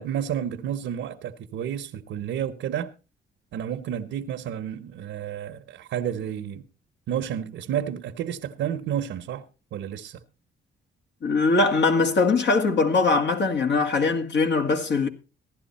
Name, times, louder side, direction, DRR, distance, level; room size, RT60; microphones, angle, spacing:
voice 1, 0.0-2.9 3.5-6.6 7.1-9.4 9.7-10.2, right 9 dB, 80° right, 1.0 m, -31 dB
voice 2, 11.2-15.1, left 3 dB, 60° left, 2.0 m, -21 dB
15.5 x 11.0 x 4.2 m
cardioid pair, 90°, 20 cm